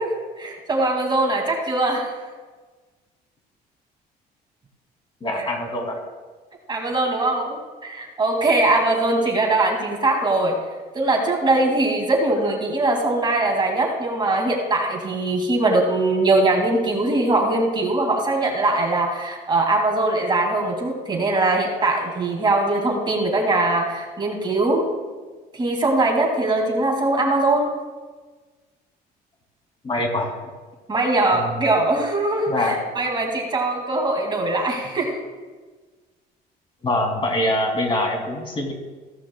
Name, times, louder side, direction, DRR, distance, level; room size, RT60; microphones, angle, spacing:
voice 1, 0.0-2.1 5.4-5.5 6.7-10.5 10.9-24.9 25.5-27.7 30.9-35.2, right 2 dB, 25° right, 1 dB, 2.4 m, -21 dB
voice 2, 5.2-6.0 29.8-30.3 31.3-31.5 32.5-32.8 36.8-38.7, left 1 dB, 30° left, 1 dB, 2.8 m, -24 dB
15.5 x 13.5 x 2.3 m, 1.3 s
cardioid pair, 110°, 17 cm